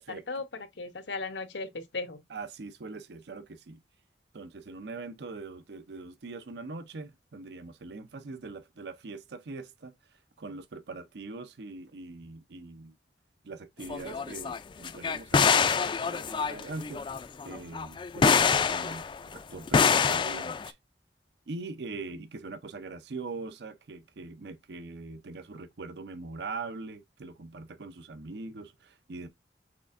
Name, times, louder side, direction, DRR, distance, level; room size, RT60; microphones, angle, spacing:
voice 1, 0.0-2.2, left 3 dB, 90° left, 0.9 m, -37 dB
voice 2, 2.3-3.8 4.3-13.0 13.4-17.0 17.4-20.8 21.5-29.3, right 3 dB, 65° right, 0.5 m, -42 dB
sound 1, 13.9-14.6 14.8-19.4 19.7-20.7, left 5 dB, 30° left, 0.3 m, -25 dB
6.1 x 3.4 x 2.4 m
head